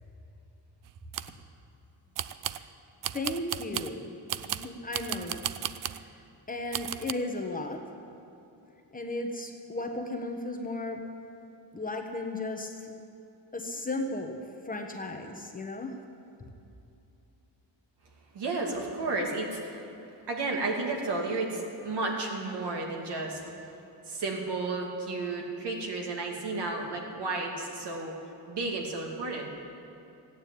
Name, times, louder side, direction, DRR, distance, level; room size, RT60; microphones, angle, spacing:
sound 1, 0.9-1.4 2.1-2.7 3.0-4.0 4.3-6.0 6.7-7.1, right 11 dB, 50° right, 0.5 m, -35 dB
voice 1, 3.1-4.1 4.5-5.4 5.9-6.2 6.5-7.8 8.9-11.0 11.7-12.9 13.5-14.4 14.6-16.0, left 2 dB, 20° left, 3 dB, 1.2 m, -35 dB
voice 2, 18.3-19.8 20.3-23.4 24.0-28.1 28.5-29.5, right 3 dB, 65° right, 1 dB, 2.6 m, -32 dB
15.0 x 9.4 x 8.6 m, 2.8 s
cardioid pair, 130°, 43 cm